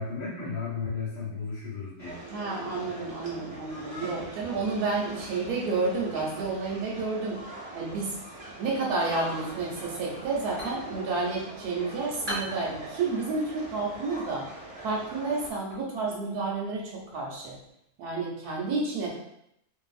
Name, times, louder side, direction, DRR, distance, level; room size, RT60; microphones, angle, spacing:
voice 1, 0.0-2.2, left 4 dB, 80° left, -5 dB, 1.3 m, -34 dB
sound 1, 2.0-15.5, right 1 dB, 55° right, 0.4 m, -42 dB
voice 2, 2.3-7.4 7.7-8.2 8.6-14.5 14.8-17.6 18.0-19.2, right 3 dB, 80° right, -3 dB, 1.1 m, -30 dB
sound 2, 10.2-17.7, right 1 dB, 30° right, 0.9 m, -44 dB
2.5 x 2.5 x 2.4 m, 0.76 s
omnidirectional pair, 1.7 m